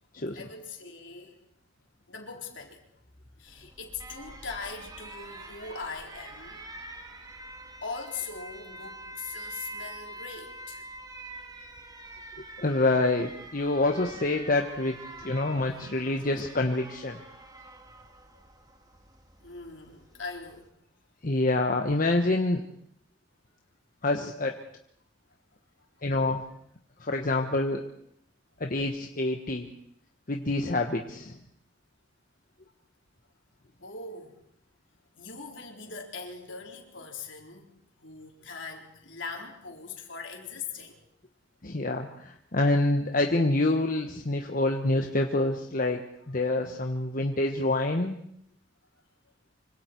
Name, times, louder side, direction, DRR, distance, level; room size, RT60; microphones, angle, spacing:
voice 1, 0.3-1.4 2.1-3.0 3.4-6.7 7.8-10.8 15.7-15.9 18.3-18.4 19.4-20.7 25.8-25.9 28.5-28.7 33.8-34.3 35.2-37.7 38.0-41.0, left 4 dB, 65° left, 1 dB, 4.1 m, -41 dB
Alarm, 3.5-20.7, right 1 dB, 20° right, 2.0 m, -45 dB
voice 2, 12.6-15.0 15.2-17.2 21.2-22.6 24.0-24.5 26.0-26.4 27.0-27.8 28.6-29.7 30.3-31.3 41.6-46.0 46.3-48.2, left 2 dB, 45° left, 3 dB, 1.3 m, -26 dB
25.5 x 25.0 x 4.6 m, 0.69 s
head